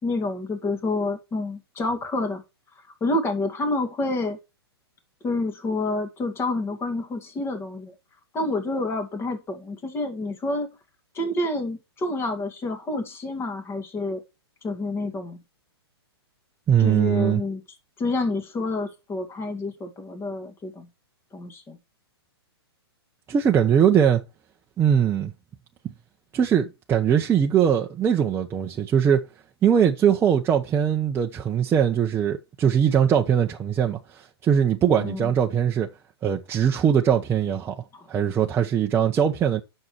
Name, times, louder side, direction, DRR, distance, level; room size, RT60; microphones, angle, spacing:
voice 1, 0.0-2.4 3.0-4.4 5.2-7.9 8.3-10.7 11.1-14.2 14.6-15.4 16.8-17.6 18.0-20.9 21.3-21.8 35.0-35.3 37.9-38.1, left 2 dB, 15° left, 2.2 m, -28 dB
voice 2, 16.7-17.4 23.3-24.2 24.8-25.3 26.3-29.3 29.6-35.9 36.2-39.6, right 8 dB, 15° right, 0.9 m, -21 dB
9.5 x 6.7 x 4.6 m
hypercardioid pair, 125°, 14 cm